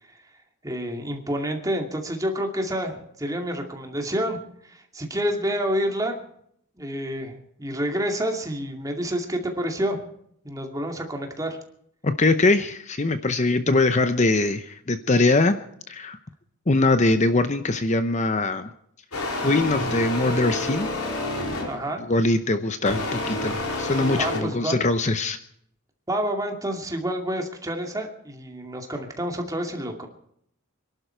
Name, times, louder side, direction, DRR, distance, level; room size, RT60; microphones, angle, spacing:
voice 1, 0.6-6.2 6.8-10.1 10.4-11.6 21.6-22.0 24.2-24.8 26.1-30.1, equal, 15° right, 3 dB, 2.4 m, -28 dB
voice 2, 12.0-15.6 15.9-16.2 16.7-18.7 19.4-20.9 22.1-25.4, left 2 dB, 35° left, 10 dB, 0.7 m, -22 dB
sound 1, 19.1-21.9 22.8-24.4, left 2 dB, 85° left, 4.2 m, -29 dB
26.5 x 12.0 x 4.6 m, 0.70 s
head